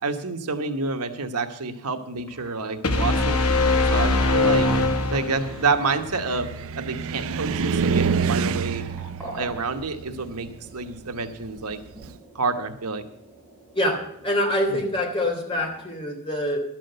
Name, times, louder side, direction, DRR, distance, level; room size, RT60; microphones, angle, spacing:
voice 1, 0.0-3.4 3.9-6.5 6.7-8.8 9.4-11.8 12.3-13.0 14.7-14.8, right 4 dB, 90° right, 6 dB, 1.2 m, -28 dB
sound 1, 2.1-16.0, right 1 dB, 10° left, 6.4 m, -47 dB
sound 2, 2.8-5.8, left 2 dB, 85° left, 1.5 m, -21 dB
Car, 3.9-12.2, right 5 dB, 65° right, 0.5 m, -29 dB
voice 2, 13.7-16.6, left 1 dB, 25° left, 1 dB, 3.2 m, -25 dB
12.0 x 7.5 x 7.9 m, 0.76 s
head